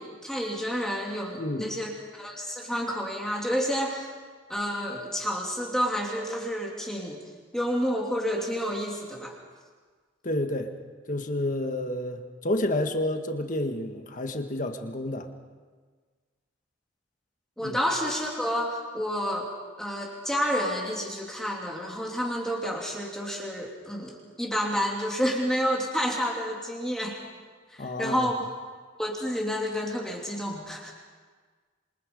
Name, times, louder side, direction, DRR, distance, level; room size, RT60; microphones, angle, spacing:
voice 1, 0.0-4.1 4.5-7.2 7.5-9.3 17.6-19.5 19.8-27.2 27.7-28.5 29.0-30.9, equal, 5° left, -2 dB, 2.8 m, -29 dB
voice 2, 10.2-10.7 11.1-15.3 17.6-17.8 27.8-28.3, left 1 dB, 40° left, 5 dB, 1.6 m, -30 dB
27.5 x 25.0 x 5.3 m, 1.5 s
head